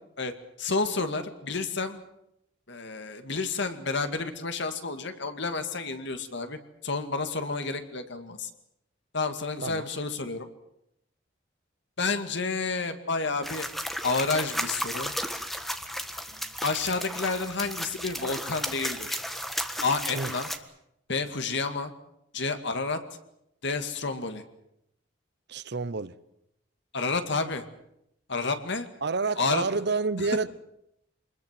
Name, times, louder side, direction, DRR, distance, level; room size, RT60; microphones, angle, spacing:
voice 1, 0.6-2.0 2.7-8.5 9.1-10.5 12.0-13.7 14.0-15.1 16.6-19.2 19.8-20.5 21.1-21.9 22.3-23.0 23.6-24.4 26.9-27.6 28.3-28.9 29.4-29.7 30.2-30.3, left 4 dB, 65° left, 2.2 m, -30 dB
sound 1, 13.4-20.6, equal, ahead, 1.5 m, -34 dB
voice 2, 25.5-26.1 29.0-30.5, right 4 dB, 60° right, 0.9 m, -29 dB
25.5 x 21.0 x 7.6 m
head